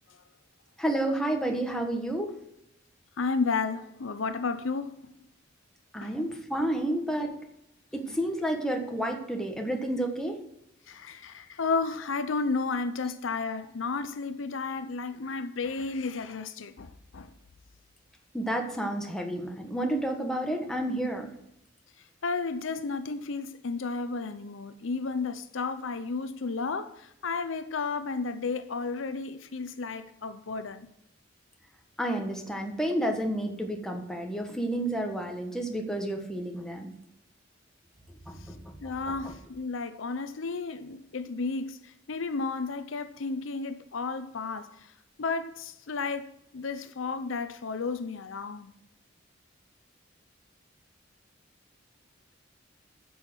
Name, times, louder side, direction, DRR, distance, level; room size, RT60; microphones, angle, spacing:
voice 1, 0.8-2.3 5.9-7.3 7.9-10.4 18.3-21.3 32.0-36.9 38.3-38.6, right 1 dB, 5° left, 1.3 m, -30 dB
voice 2, 3.2-5.1 6.0-6.1 8.1-8.2 10.9-17.3 22.2-30.9 38.8-44.9 45.2-48.7, left 4 dB, 70° left, 0.7 m, -33 dB
9.9 x 6.4 x 6.0 m
head